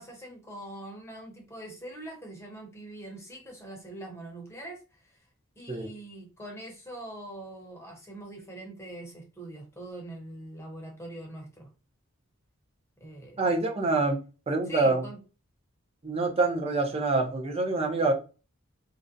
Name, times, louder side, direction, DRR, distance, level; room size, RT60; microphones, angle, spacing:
voice 1, 0.0-5.2 5.6-11.7 13.0-13.4 14.7-15.2, right 1 dB, 15° left, 0.7 m, -43 dB
voice 2, 13.4-15.0 16.0-18.1, right 3 dB, 30° right, 0.5 m, -26 dB
2.4 x 2.1 x 2.5 m
head